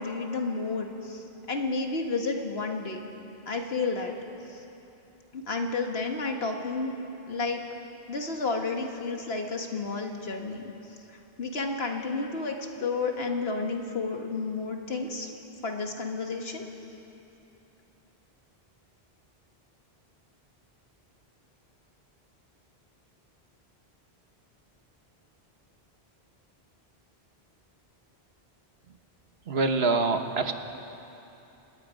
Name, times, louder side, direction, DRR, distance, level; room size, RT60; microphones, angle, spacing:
voice 1, 0.0-3.0 3.5-4.2 4.5-4.6 5.3-6.9 7.3-7.6 8.1-10.7 11.1-15.3 15.6-16.7, left 3 dB, 75° left, 3 dB, 1.9 m, -31 dB
voice 2, 29.5-30.5, right 3 dB, 80° right, 7 dB, 1.4 m, -25 dB
29.5 x 18.0 x 5.2 m, 3.0 s
omnidirectional pair, 1.1 m